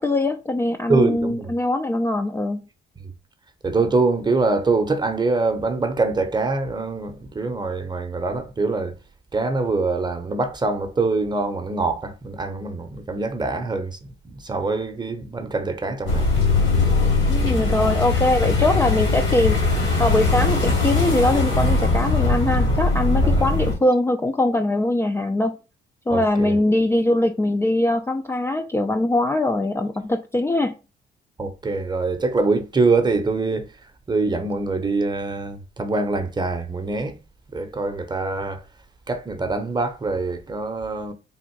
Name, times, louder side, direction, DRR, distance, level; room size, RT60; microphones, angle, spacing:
voice 1, 0.0-2.6 17.3-19.6 20.0-25.6 26.1-30.7, left 1 dB, 15° left, 0.3 m, -22 dB
voice 2, 0.9-1.5 3.6-8.9 9.3-16.3 16.6-16.9 18.6-18.7 23.2-23.5 26.1-26.5 31.4-33.7 34.1-37.2 37.5-38.6 39.1-41.1, right 3 dB, 20° right, 0.8 m, -24 dB
sound 1, 16.1-23.7, left 3 dB, 85° left, 2.2 m, -20 dB
3.6 x 2.5 x 4.5 m
cardioid pair, 90°, 20 cm